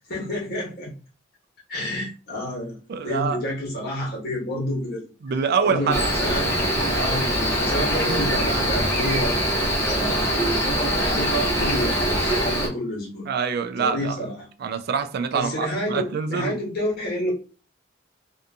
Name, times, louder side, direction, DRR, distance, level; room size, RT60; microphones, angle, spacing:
voice 1, 0.1-0.9 1.7-2.7 3.0-5.0 5.6-6.5 6.9-9.3 9.8-10.4 11.0-13.2 13.8-14.5 15.3-17.3, left 1 dB, 55° left, 1.2 m, -29 dB
voice 2, 2.9-3.4 5.2-6.1 13.3-14.2 14.6-16.6, right 6 dB, 55° right, 0.3 m, -25 dB
Cricket, 5.9-12.7, equal, 15° left, 0.7 m, -23 dB
2.6 x 2.5 x 2.3 m
head